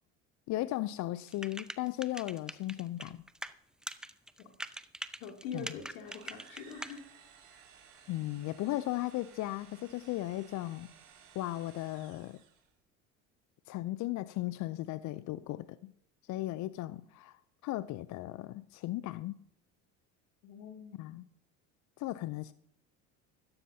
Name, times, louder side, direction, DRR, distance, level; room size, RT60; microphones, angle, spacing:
voice 1, 0.5-3.2 5.5-5.7 8.1-10.9 11.3-12.4 13.7-15.9 16.3-19.4 21.0-21.2 22.0-22.5, left 16 dB, 50° left, 0.5 m, -36 dB
sound 1, 1.3-3.5 3.8-7.0, right 1 dB, ahead, 0.7 m, -42 dB
voice 2, 5.2-7.0 7.5-7.6 20.4-21.1, left 6 dB, 75° left, 2.7 m, -44 dB
sound 2, 6.0-12.7, right 7 dB, 60° right, 4.3 m, -58 dB
15.5 x 13.5 x 2.8 m
hypercardioid pair, 75°, 39 cm